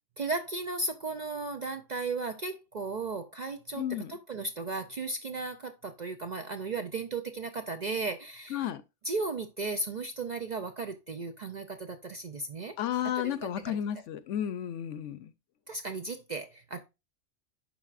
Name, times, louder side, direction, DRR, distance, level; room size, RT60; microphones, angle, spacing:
voice 1, 0.2-8.7 9.0-12.7 13.1-13.3 13.7-13.8 15.7-16.8, right 3 dB, 50° right, 0.5 m, -35 dB
voice 2, 3.8-4.1 8.5-8.8 12.8-15.3, left 10 dB, 75° left, 0.9 m, -32 dB
11.0 x 4.2 x 2.5 m
omnidirectional pair, 1.3 m